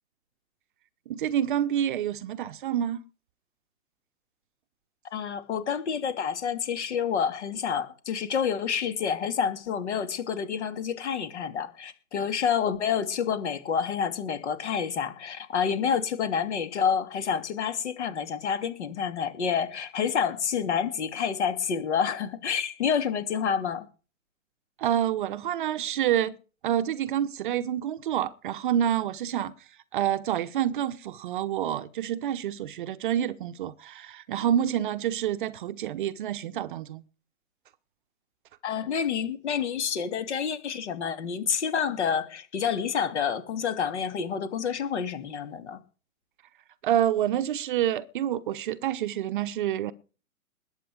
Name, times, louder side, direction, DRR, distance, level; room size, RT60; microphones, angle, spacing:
voice 1, 1.1-3.0 24.8-26.4 26.6-29.5 29.9-37.0 46.8-49.9, right 10 dB, 35° right, 0.9 m, -28 dB
voice 2, 5.1-23.9 38.6-45.8, left 7 dB, 50° left, 2.7 m, -28 dB
20.5 x 8.5 x 5.0 m
figure-of-eight pair, 120°, 43 cm